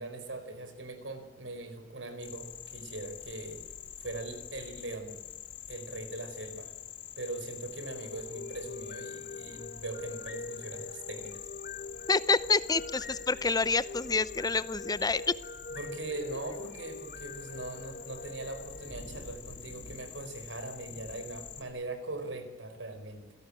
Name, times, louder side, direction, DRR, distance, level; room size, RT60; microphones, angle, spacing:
voice 1, 0.0-3.6 4.0-5.2 5.7-6.7 7.2-11.5 15.7-23.3, right 2 dB, 85° right, 8 dB, 4.7 m, -41 dB
sound 1, 2.2-21.6, left 8 dB, 65° left, 2.7 m, -46 dB
sound 2, 7.7-19.8, left 3 dB, 50° left, 1.0 m, -45 dB
voice 2, 12.1-15.2, left 4 dB, 20° left, 15 dB, 0.7 m, -28 dB
28.0 x 17.0 x 8.6 m, 1.2 s
head